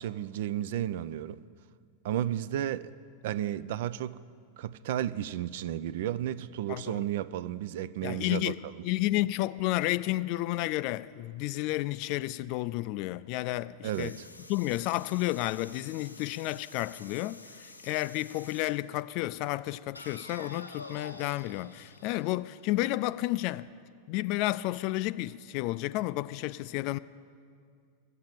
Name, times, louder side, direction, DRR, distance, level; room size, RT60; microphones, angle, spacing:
voice 1, 0.0-1.4 2.0-2.9 3.2-4.2 4.6-8.9 13.8-14.3, right 11 dB, 55° right, 0.3 m, -33 dB
voice 2, 6.7-7.0 8.0-14.2 14.5-23.7 24.1-27.0, left 17 dB, 45° left, 0.3 m, -31 dB
sound 1, 13.9-18.8 20.0-22.9, left 2 dB, 85° left, 0.6 m, -49 dB
13.0 x 8.1 x 8.8 m
figure-of-eight pair, 90°, 0 cm